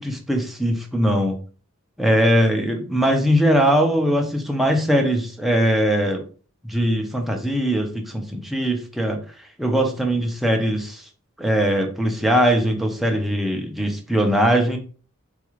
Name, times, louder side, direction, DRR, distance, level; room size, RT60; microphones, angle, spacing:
voice 1, 0.0-1.4 2.0-6.2 6.6-9.2 9.6-11.1 11.4-14.8, equal, ahead, 2 dB, 0.5 m, -20 dB
4.0 x 2.4 x 3.0 m, 0.39 s
head